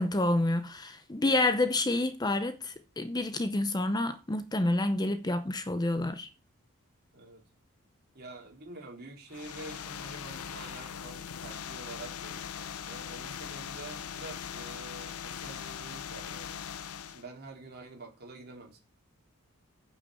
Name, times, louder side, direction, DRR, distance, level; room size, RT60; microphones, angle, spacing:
voice 1, 0.0-6.3, left 2 dB, 20° left, 0.7 m, -28 dB
voice 2, 7.1-7.4 8.1-16.6 17.1-18.8, right 2 dB, 45° right, 3.7 m, -47 dB
sound 1, 9.3-17.2, left 8 dB, 85° left, 0.6 m, -40 dB
9.5 x 6.0 x 6.9 m
head